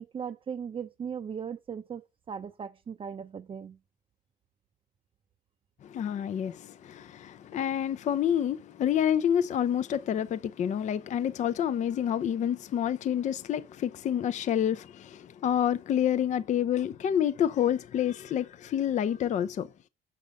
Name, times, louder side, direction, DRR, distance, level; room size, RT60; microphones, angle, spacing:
voice 1, 0.0-3.8, right 7 dB, 30° right, 0.6 m, -38 dB
voice 2, 5.8-19.7, left 9 dB, 45° left, 0.5 m, -28 dB
6.2 x 5.5 x 5.1 m
cardioid pair, 110°, 17 cm